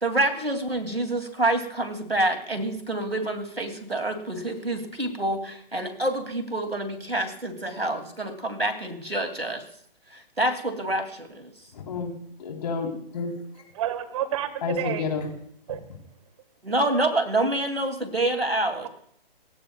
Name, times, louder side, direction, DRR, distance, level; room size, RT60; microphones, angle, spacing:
voice 1, 0.0-9.6 10.1-11.5 16.6-18.9, right 1 dB, 85° right, 7 dB, 2.9 m, -27 dB
voice 2, 11.7-12.1 12.4-13.3 14.6-15.3, left 4 dB, 45° left, 1 dB, 3.8 m, -30 dB
voice 3, 13.7-15.1 15.7-15.8, right 11 dB, 35° right, 12 dB, 1.7 m, -29 dB
28.0 x 16.0 x 2.4 m, 0.65 s
figure-of-eight pair, 130°, 29 cm